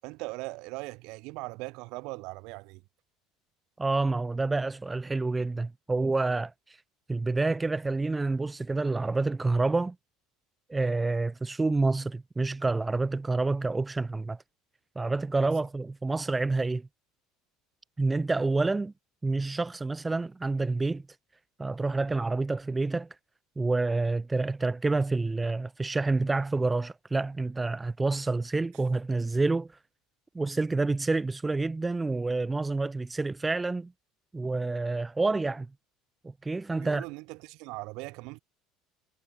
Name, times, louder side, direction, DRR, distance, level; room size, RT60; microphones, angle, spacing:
voice 1, 0.0-2.8 36.8-38.4, right 25 dB, 60° right, 8.0 m, -39 dB
voice 2, 3.8-6.8 7.1-9.9 10.7-14.4 15.0-16.9 18.0-18.9 19.2-21.0 21.6-23.1 23.6-29.7 30.3-33.9 34.3-35.7 36.2-37.0, right 3 dB, 15° right, 2.6 m, -28 dB
figure-of-eight pair, 65°, 0 cm